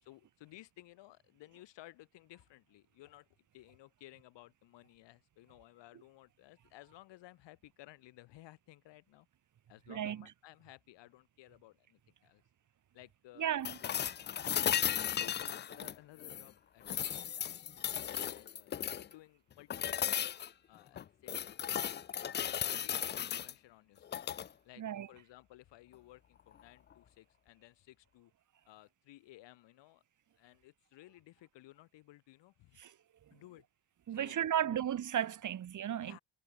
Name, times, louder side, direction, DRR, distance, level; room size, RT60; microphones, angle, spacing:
voice 1, 0.0-3.3 3.5-9.3 9.7-12.4 12.9-13.5 14.2-17.6 18.2-20.3 20.7-24.3 24.6-28.3 28.6-30.0 30.4-32.8 33.3-33.7 34.1-34.8 36.0-36.2, left 16 dB, 85° left, 5.9 m, -57 dB
voice 2, 9.9-10.2 13.4-13.8 14.4-14.5 24.8-25.1 32.8-32.9 33.3-33.4 34.1-36.2, right 10 dB, 45° right, 1.5 m, -35 dB
sound 1, 13.6-16.5 16.8-19.1 19.7-20.5 20.9-23.5 24.0-24.5 26.5-26.6, left 9 dB, 25° left, 0.4 m, -36 dB
cardioid pair, 120°, 42 cm